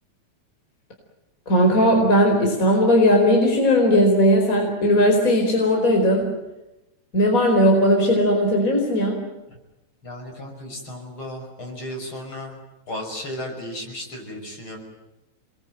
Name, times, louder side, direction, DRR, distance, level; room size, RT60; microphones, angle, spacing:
voice 1, 1.5-6.3 7.1-9.2, equal, 25° left, 1 dB, 4.9 m, -18 dB
voice 2, 10.0-12.6 12.9-14.8, left 1 dB, 40° left, 2 dB, 6.8 m, -34 dB
28.5 x 21.5 x 9.1 m, 0.97 s
omnidirectional pair, 3.4 m